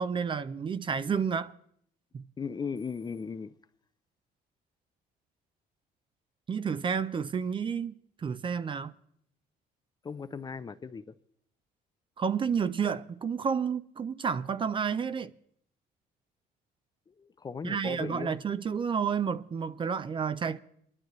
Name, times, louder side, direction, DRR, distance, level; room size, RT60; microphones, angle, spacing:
voice 1, 0.0-1.5 2.1-2.2 6.5-9.0 12.2-15.3 17.6-20.6, right 6 dB, 30° right, 0.5 m, -30 dB
voice 2, 2.4-3.5 10.0-11.1 17.1-18.3, left 5 dB, 25° left, 0.5 m, -37 dB
24.0 x 11.5 x 3.1 m
cardioid pair, 110°, 17 cm